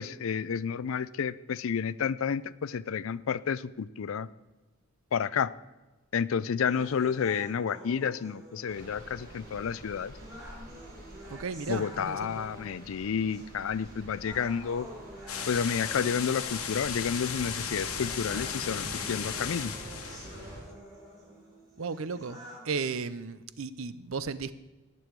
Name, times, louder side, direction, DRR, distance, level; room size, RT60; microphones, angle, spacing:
voice 1, 0.0-4.3 5.1-5.5 6.1-10.1 11.7-14.9 15.5-19.7, left 6 dB, 65° left, 18 dB, 0.4 m, -30 dB
sound 1, 6.7-22.7, equal, 20° right, 3.7 m, -49 dB
sound 2, 8.7-20.6, equal, 40° right, 3.5 m, -47 dB
voice 2, 11.3-12.4 21.8-22.4 22.6-24.5, right 5 dB, 70° right, 15 dB, 0.6 m, -35 dB
sound 3, 15.3-20.5, left 7 dB, 85° left, 1.3 m, -36 dB
18.5 x 6.9 x 4.7 m, 1.1 s
head